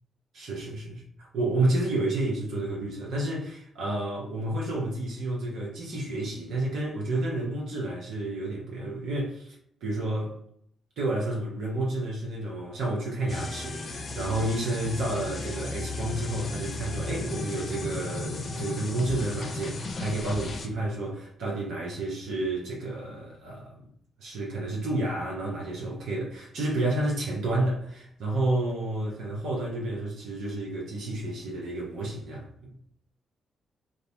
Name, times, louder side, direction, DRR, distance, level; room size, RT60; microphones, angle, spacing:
voice 1, 0.3-9.6 9.8-10.3 11.0-23.8 24.2-32.7, right 2 dB, 70° right, 0.6 m, -30 dB
sound 1, 13.3-20.7, left 3 dB, 55° left, 0.4 m, -35 dB
2.4 x 2.0 x 2.7 m
hypercardioid pair, 45°, 0 cm